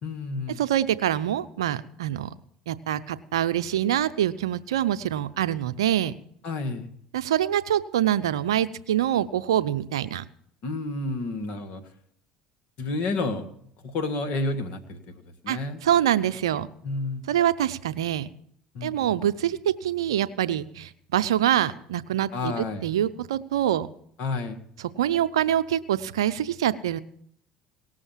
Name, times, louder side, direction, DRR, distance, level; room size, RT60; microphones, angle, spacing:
voice 1, 0.0-0.6 6.4-6.9 10.6-11.8 12.8-13.4 13.8-15.0 15.4-15.8 16.8-17.2 18.7-19.1 22.3-22.9 24.2-24.6, left 3 dB, 65° left, 8 dB, 1.8 m, -30 dB
voice 2, 0.6-2.3 2.7-6.1 7.1-10.2 15.5-16.7 17.3-18.3 18.8-23.9 25.0-27.0, right 11 dB, 90° right, 13 dB, 0.5 m, -25 dB
18.0 x 6.4 x 7.3 m, 0.67 s
hypercardioid pair, 75°, 3 cm